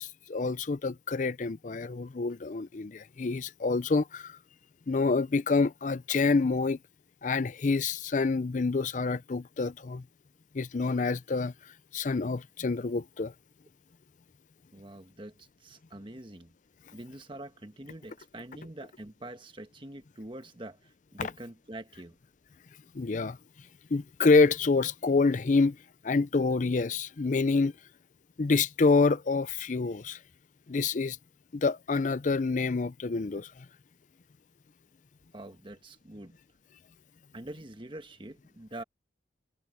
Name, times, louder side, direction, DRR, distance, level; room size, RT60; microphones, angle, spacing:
voice 1, 0.0-4.4 4.9-6.8 7.2-10.0 10.5-11.5 11.9-13.3 22.9-23.4 23.9-25.8 26.0-27.7 28.4-30.2 30.7-31.2 31.5-33.5, left 4 dB, 45° left, 0.5 m, -27 dB
voice 2, 14.7-16.5 16.9-22.2 35.3-36.4 37.3-38.8, right 1 dB, 25° right, 1.4 m, -45 dB
head